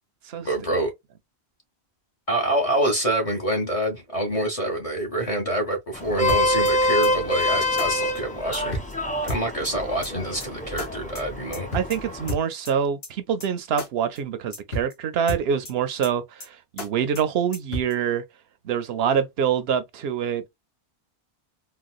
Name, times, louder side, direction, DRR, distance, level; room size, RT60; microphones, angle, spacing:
voice 1, 0.4-0.9 2.3-8.8 9.2-11.7, right 1 dB, 35° left, 0.9 m, -26 dB
Vehicle horn car horn honking, 5.9-12.3, left 1 dB, 10° left, 0.6 m, -26 dB
sound 1, 6.3-6.7 7.0-7.1 7.4-7.5 7.8-7.9 8.2-8.3 8.5-8.9 9.3-9.7 10.0-10.1 10.4-10.5 10.8-10.9 11.2-11.3 11.5-12.0 12.3-12.7 13.0-13.1 13.4-13.5 13.8-13.9 14.2-14.3 14.5-14.9 15.3-15.7 16.0-16.1 16.4-16.5 16.8-16.9 17.2-17.3 17.5-17.9, equal, 70° left, 1.7 m, -31 dB
voice 2, 11.7-18.2 18.6-20.5, right 8 dB, 70° right, 0.8 m, -25 dB
3.9 x 2.2 x 2.4 m
omnidirectional pair, 1.1 m